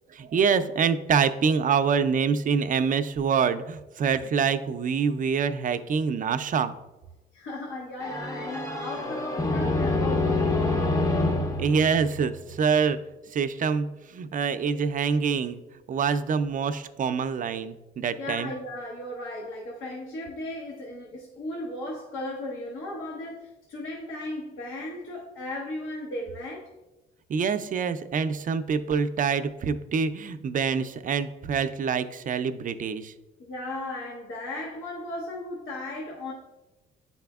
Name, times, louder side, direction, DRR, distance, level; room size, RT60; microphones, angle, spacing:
voice 1, 0.1-6.8 11.6-13.0 13.3-15.6 15.9-18.5 27.3-33.1, right 6 dB, 45° right, 0.4 m, -25 dB
voice 2, 7.3-11.2 18.2-26.7 33.4-36.3, left 1 dB, 80° left, 1.0 m, -36 dB
sound 1, 8.0-12.8, left 2 dB, 15° left, 0.6 m, -27 dB
9.6 x 4.2 x 2.3 m
cardioid pair, 90°, 20 cm